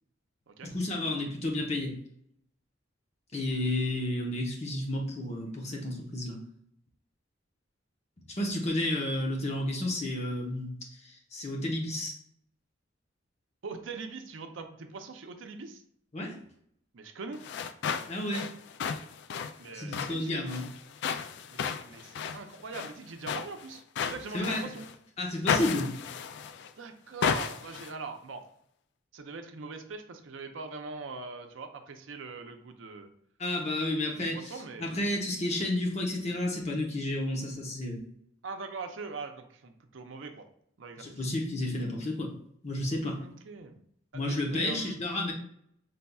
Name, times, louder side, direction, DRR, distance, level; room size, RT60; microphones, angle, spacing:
voice 1, 0.6-2.0 3.3-6.4 8.3-10.7 11.0-12.2 16.1-16.4 18.1-18.5 19.7-20.7 24.3-24.7 25.2-25.9 33.4-34.5 34.8-38.0 41.0-42.3 42.6-43.2 44.1-45.3, left 1 dB, 35° left, 0 dB, 0.9 m, -31 dB
voice 2, 13.6-15.8 16.9-17.4 19.6-20.5 21.5-24.8 26.8-28.4 29.1-33.1 34.3-35.0 38.4-40.5 40.8-41.2 43.2-43.8 44.1-45.0, right 4 dB, 75° right, 6 dB, 0.6 m, -42 dB
sound 1, 17.3-24.9 25.5-26.7 27.2-27.9, left 7 dB, 60° left, 0.3 m, -34 dB
5.4 x 3.4 x 2.3 m, 0.68 s
head